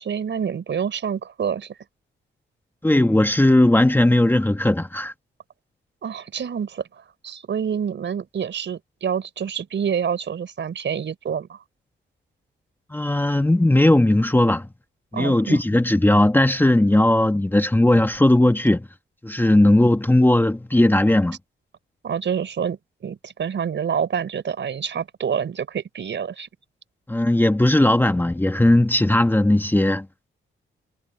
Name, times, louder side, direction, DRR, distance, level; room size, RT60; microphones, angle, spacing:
voice 1, 0.0-1.7 6.0-6.8 7.2-11.6 15.1-15.6 22.0-22.8 23.0-26.5, right 7 dB, 60° right, 4.5 m, -27 dB
voice 2, 2.8-5.1 12.9-14.7 15.1-18.8 19.2-21.4 27.1-30.0, left 1 dB, 10° left, 1.5 m, -17 dB
cardioid pair, 85°, 21 cm